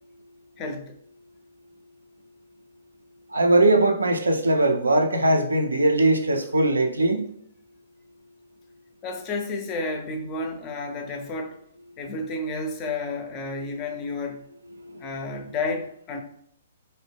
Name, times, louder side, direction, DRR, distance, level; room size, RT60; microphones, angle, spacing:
voice 1, 0.6-1.0 9.0-11.6 12.0-14.5 15.0-16.2, left 2 dB, 25° left, 0.4 m, -31 dB
voice 2, 3.3-7.2 14.8-15.1, right 2 dB, 75° right, 0.4 m, -20 dB
2.6 x 2.1 x 3.4 m
figure-of-eight pair, 120°, 0 cm